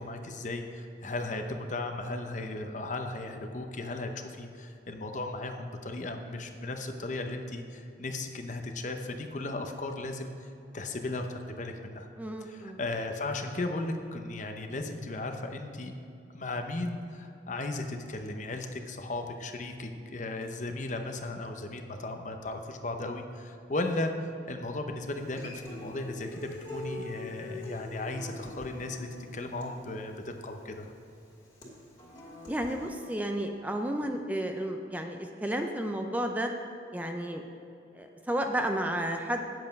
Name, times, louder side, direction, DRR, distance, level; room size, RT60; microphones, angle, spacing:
voice 1, 0.0-12.1 12.4-15.9 16.3-24.1 24.5-30.9, left 2 dB, 40° left, 5 dB, 0.7 m, -36 dB
voice 2, 12.2-12.8 32.5-36.5 36.9-37.4 37.9-39.4, right 1 dB, 10° right, 4 dB, 0.5 m, -32 dB
Human voice / Acoustic guitar, 25.2-33.2, left 2 dB, 20° left, 2.4 m, -44 dB
9.4 x 7.7 x 5.2 m, 2.8 s
head